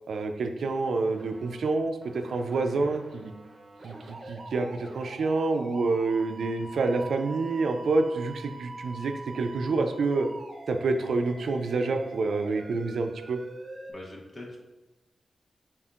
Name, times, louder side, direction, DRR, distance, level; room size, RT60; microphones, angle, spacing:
voice 1, 0.1-3.3 3.8-10.3 10.7-13.4, right 3 dB, 80° right, 6 dB, 0.3 m, -28 dB
sound 1, 0.9-1.6 2.0-13.9, right 2 dB, 40° right, 0.6 m, -45 dB
voice 2, 13.9-14.6, left 1 dB, 40° left, -2 dB, 0.9 m, -43 dB
4.2 x 3.6 x 2.4 m, 1.0 s
wide cardioid pair, 95°, 0 cm